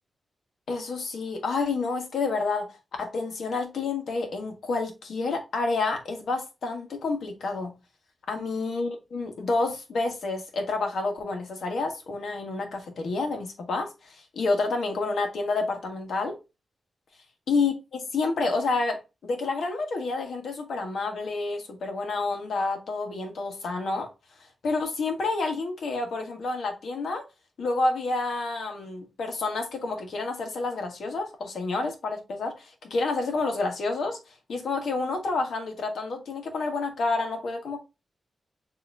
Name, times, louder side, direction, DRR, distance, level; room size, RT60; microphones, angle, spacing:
voice 1, 0.7-7.7 8.3-16.4 17.5-24.1 24.6-27.2 27.6-34.2 34.5-37.8, left 3 dB, 80° left, 1.4 m, -29 dB
6.7 x 3.0 x 2.5 m
wide cardioid pair, 110°, 0 cm